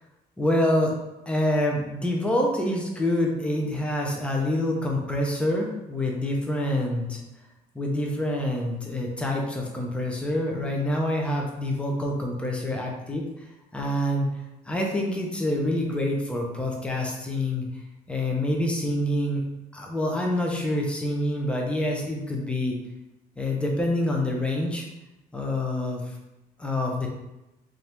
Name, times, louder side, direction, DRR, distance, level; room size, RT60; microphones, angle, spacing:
voice 1, 0.4-0.9 1.3-7.2 7.7-13.2 13.7-14.3 14.6-17.7 18.1-19.4 19.7-22.7 23.4-24.9 25.3-26.1 26.6-27.1, left 1 dB, 5° left, 0 dB, 0.7 m, -26 dB
3.7 x 2.9 x 3.5 m, 0.96 s
cardioid pair, 110°, 17 cm